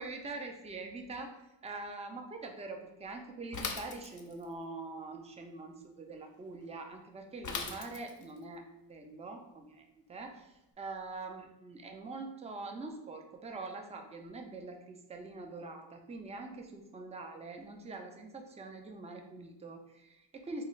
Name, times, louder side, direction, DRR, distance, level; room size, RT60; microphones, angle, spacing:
voice 1, 0.0-1.3 1.6-8.6 8.9-20.6, right 3 dB, 15° right, 4 dB, 0.4 m, -44 dB
Bicycle / Mechanisms, 3.5-4.5 7.4-8.4, left 5 dB, 45° left, 0.5 m, -39 dB
3.2 x 2.4 x 3.0 m, 0.93 s
wide cardioid pair, 100°, 43 cm